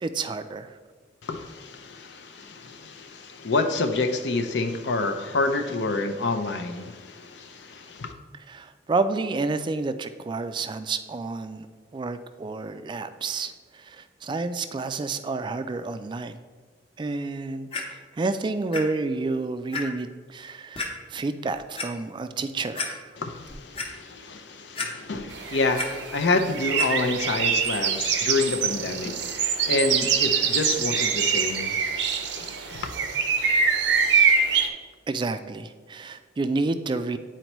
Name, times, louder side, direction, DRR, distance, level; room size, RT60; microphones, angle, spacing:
voice 1, 0.0-0.7 8.5-11.7 11.9-16.4 17.0-23.1 35.1-37.2, right 3 dB, 25° right, 10 dB, 0.3 m, -30 dB
voice 2, 1.2-8.1 23.2-32.9, left 3 dB, 75° left, 6 dB, 0.6 m, -28 dB
Clock, 17.7-17.8 18.7-18.8 19.3-19.4 19.7-19.8 20.8-20.9 21.5-21.9 22.4-22.5 22.8-22.9 23.3-23.9 24.8-25.3 25.5-25.9 26.8-26.9 27.6-27.7, left 3 dB, 30° left, 0.9 m, -31 dB
sound 1, 25.3-34.7, right 6 dB, 75° right, 0.6 m, -24 dB
9.2 x 4.3 x 3.0 m, 1.4 s
head